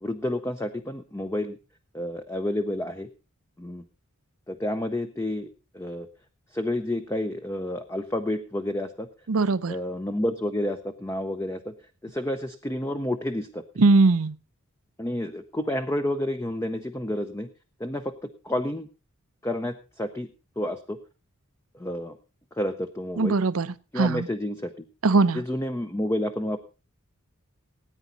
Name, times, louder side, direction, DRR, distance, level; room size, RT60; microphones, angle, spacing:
voice 1, 0.0-1.6 1.9-3.1 3.6-3.8 4.5-5.5 5.7-6.1 6.5-9.1 9.7-11.7 12.0-13.6 15.0-17.5 17.8-18.1 18.4-18.9 19.4-20.3 20.6-21.0 21.7-22.2 22.5-23.4 23.9-24.7 25.3-26.6, left 1 dB, 15° left, 7 dB, 0.6 m, -30 dB
voice 2, 9.3-9.7 13.8-14.3 23.2-23.7 24.0-24.3 25.0-25.4, right 3 dB, 75° right, 16 dB, 0.7 m, -20 dB
18.0 x 9.4 x 4.0 m, 0.32 s
head